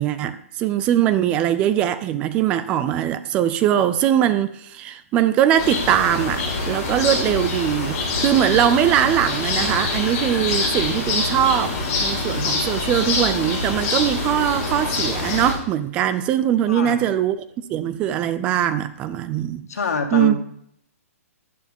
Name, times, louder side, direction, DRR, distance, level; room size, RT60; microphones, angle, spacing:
voice 1, 0.0-11.7 12.0-17.4 17.7-19.7 20.1-20.4, right 10 dB, 15° right, 13 dB, 0.3 m, -21 dB
sound 1, 5.6-15.5, left 3 dB, 25° left, 4.0 m, -25 dB
voice 2, 16.7-17.1 19.7-20.4, left 3 dB, 80° left, 5 dB, 2.0 m, -25 dB
11.5 x 11.0 x 3.6 m, 0.71 s
hypercardioid pair, 170°, 8 cm